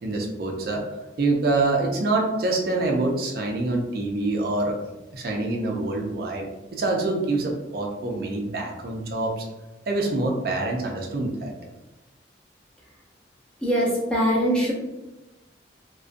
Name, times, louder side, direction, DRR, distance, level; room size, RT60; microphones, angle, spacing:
voice 1, 0.0-0.8 1.2-4.8 5.1-9.5 9.9-11.5, right 2 dB, 55° right, 0 dB, 0.4 m, -26 dB
voice 2, 13.6-14.7, equal, 5° left, -6 dB, 0.6 m, -22 dB
2.4 x 2.1 x 2.4 m, 1.0 s
head